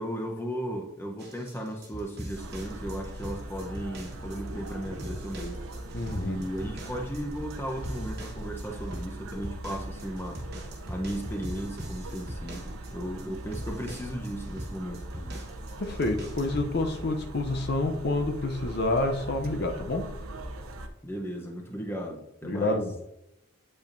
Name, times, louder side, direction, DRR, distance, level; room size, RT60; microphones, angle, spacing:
voice 1, 0.0-5.6 6.2-10.4 10.9-15.4 21.0-22.8, equal, 10° left, 1 dB, 0.7 m, -36 dB
sound 1, 1.2-16.7, right 1 dB, 45° right, 1.3 m, -42 dB
sound 2, 2.4-20.9, right 1 dB, 80° right, 0.7 m, -40 dB
voice 2, 5.9-6.4 15.8-20.1 22.4-23.1, left 2 dB, 50° left, 4 dB, 0.5 m, -28 dB
8.5 x 5.5 x 2.6 m, 0.85 s
head